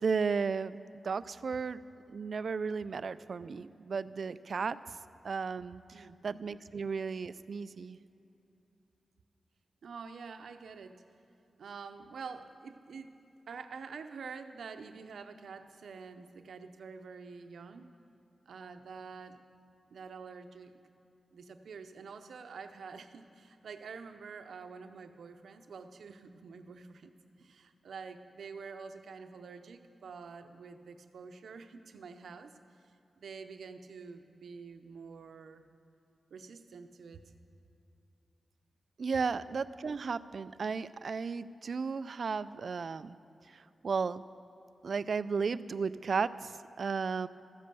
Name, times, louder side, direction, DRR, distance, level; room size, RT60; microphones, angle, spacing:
voice 1, 0.0-1.8 2.1-4.8 5.2-8.0 39.0-43.2 43.8-44.2 44.8-47.3, right 5 dB, 60° right, 15 dB, 0.4 m, -34 dB
voice 2, 9.8-11.0 11.6-13.2 13.5-17.9 18.5-19.4 19.9-20.8 21.3-27.1 27.4-32.5 33.2-35.6 36.3-37.2, right 5 dB, 85° right, 7 dB, 0.7 m, -47 dB
14.0 x 10.0 x 6.8 m, 2.9 s
wide cardioid pair, 95°, 0 cm